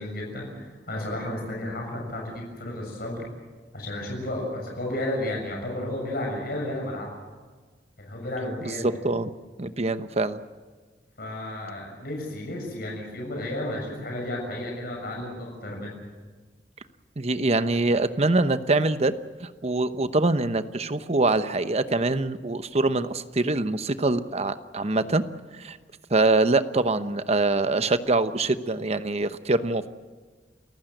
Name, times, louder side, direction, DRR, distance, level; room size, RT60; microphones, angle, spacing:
voice 1, 0.0-3.2 3.7-7.1 8.0-8.9 11.2-16.0, left 1 dB, 60° left, 0 dB, 6.7 m, -32 dB
voice 2, 8.8-9.3 9.6-10.4 17.2-19.1 19.4-25.2 25.6-25.8 26.1-29.9, right 2 dB, 35° right, 11 dB, 0.9 m, -24 dB
29.5 x 15.0 x 7.9 m, 1.4 s
head